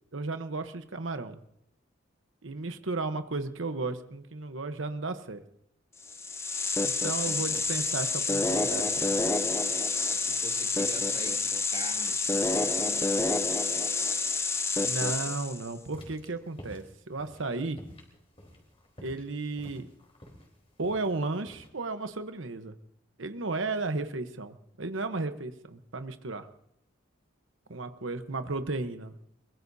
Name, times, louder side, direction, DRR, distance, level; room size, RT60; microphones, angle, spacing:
voice 1, 0.1-1.4 2.4-5.4 6.8-9.2 14.8-17.8 19.0-19.9 20.8-22.8 23.2-26.5 27.7-29.2, right 3 dB, 85° right, 9 dB, 1.1 m, -34 dB
sound 1, 6.1-15.7, left 3 dB, 15° left, 0.6 m, -28 dB
voice 2, 10.1-13.3, right 2 dB, 30° right, 0 dB, 2.7 m, -45 dB
sound 2, 15.8-21.7, equal, 30° left, 3.7 m, -49 dB
24.0 x 22.0 x 2.8 m, 0.77 s
head